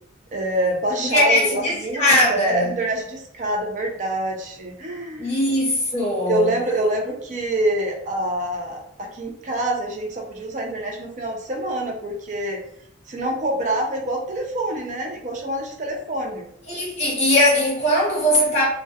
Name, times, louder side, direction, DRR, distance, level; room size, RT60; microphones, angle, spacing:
voice 1, 0.3-5.3 6.3-12.6 13.1-16.5, right 1 dB, 40° right, 0.4 m, -26 dB
voice 2, 1.0-2.8 5.2-6.6 16.7-18.6, left 1 dB, 35° left, 0.9 m, -20 dB
2.3 x 2.1 x 2.6 m
head